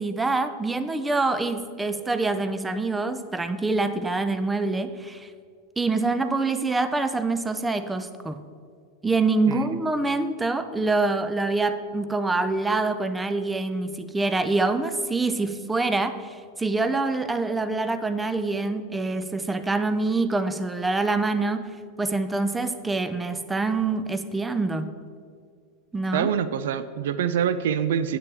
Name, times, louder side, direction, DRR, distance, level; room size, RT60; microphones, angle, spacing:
voice 1, 0.0-5.3 5.8-8.4 9.0-21.6 22.0-24.9 25.9-26.3, right 3 dB, 10° right, 10 dB, 0.6 m, -25 dB
voice 2, 9.5-9.8 26.1-28.2, right 8 dB, 70° right, 13 dB, 0.4 m, -25 dB
9.7 x 8.6 x 3.5 m, 2.2 s
hypercardioid pair, 95°, 0 cm